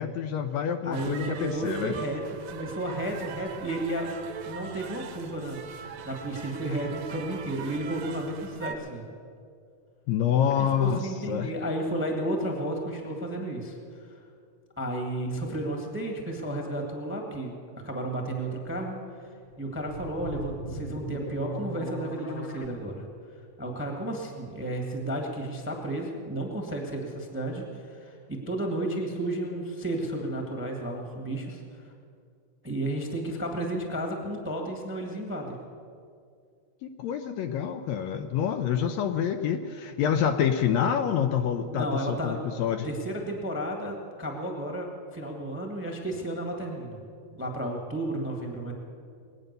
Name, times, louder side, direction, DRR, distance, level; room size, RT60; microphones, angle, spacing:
voice 1, 0.0-1.9 10.1-11.0 11.3-11.5 36.8-42.9, left 8 dB, 75° left, 7 dB, 1.7 m, -27 dB
voice 2, 0.8-2.2 2.5-4.1 4.4-9.0 10.6-14.1 14.8-17.5 17.8-19.3 19.6-23.0 23.6-31.8 32.6-35.6 41.7-42.4 42.8-47.0 47.3-48.7, right 1 dB, 5° right, 2 dB, 1.0 m, -32 dB
sound 1, 0.9-8.8, right 7 dB, 75° right, 2.1 m, -41 dB
sound 2, 19.4-22.7, equal, 55° left, 1.4 m, -38 dB
20.5 x 9.0 x 6.7 m, 2.3 s
omnidirectional pair, 3.4 m